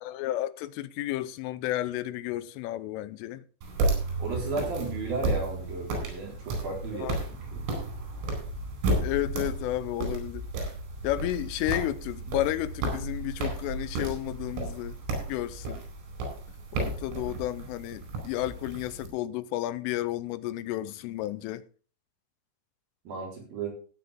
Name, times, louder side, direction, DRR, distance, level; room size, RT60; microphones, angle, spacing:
voice 1, 0.0-3.4 6.9-7.2 9.0-10.5 11.0-15.0 15.3-15.8 16.7-21.6, left 15 dB, 85° left, 3.2 m, -32 dB
sound 1, 3.6-19.1, right 2 dB, 90° right, 6.7 m, -33 dB
voice 2, 4.2-7.7 23.1-23.7, right 3 dB, 50° right, 5.5 m, -34 dB
17.0 x 8.9 x 3.6 m
omnidirectional pair, 5.7 m